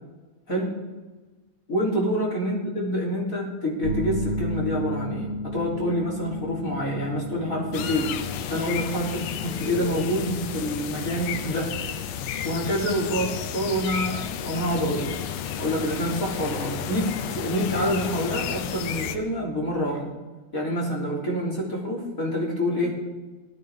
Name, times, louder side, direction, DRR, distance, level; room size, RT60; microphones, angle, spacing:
voice 1, 1.7-8.1 8.5-11.7 12.4-15.1 15.6-20.1 20.5-23.0, equal, 25° left, -4 dB, 3.6 m, -27 dB
sound 1, 3.8-19.7, left 1 dB, 50° right, 5.7 m, -36 dB
sound 2, 7.7-19.2, left 9 dB, 80° left, 2.4 m, -32 dB
18.5 x 14.5 x 3.7 m, 1.2 s
omnidirectional pair, 3.7 m